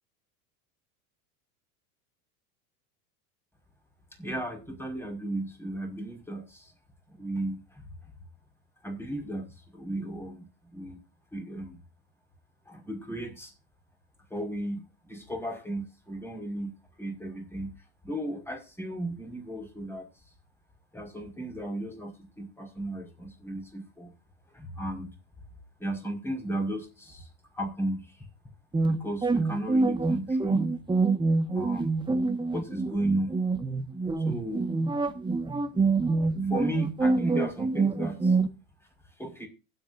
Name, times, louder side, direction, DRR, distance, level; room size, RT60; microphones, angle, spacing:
voice 1, 4.2-6.7 7.2-7.8 8.8-11.0 11.3-11.8 12.7-13.5 14.3-17.8 18.0-20.1 20.9-24.1 24.5-25.1 25.8-27.3 27.5-28.3 28.9-30.8 31.5-31.9 32.5-33.4 34.2-34.7 36.5-38.4 39.2-39.5, right 1 dB, 5° left, 4 dB, 5.2 m, -35 dB
sound 1, 28.7-38.5, right 3 dB, 10° right, 1.5 m, -26 dB
23.5 x 8.6 x 2.6 m, 0.30 s
hypercardioid pair, 100°, 43 cm